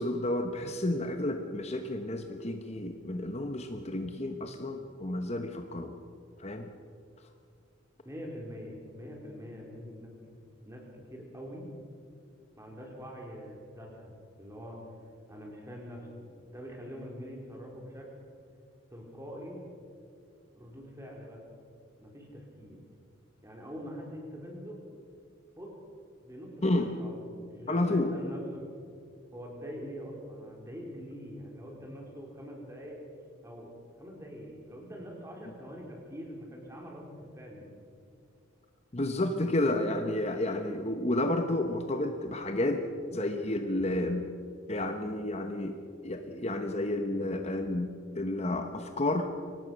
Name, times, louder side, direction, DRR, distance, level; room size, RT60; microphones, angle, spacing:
voice 1, 0.0-5.9 6.4-6.7 26.6-26.9 27.7-28.1 38.9-42.8 43.1-44.3 44.7-45.8 46.0-47.9 48.1-49.3, left 1 dB, 35° left, 6 dB, 1.0 m, -31 dB
voice 2, 8.0-10.1 10.7-11.7 12.6-14.8 15.3-18.1 18.9-19.6 20.5-21.4 22.0-22.8 23.4-24.8 25.6-25.7 26.2-26.5 26.8-28.7 29.3-33.0 33.4-33.7 34.0-37.7, equal, 15° right, -1 dB, 4.2 m, -44 dB
24.5 x 18.5 x 6.3 m, 2.3 s
head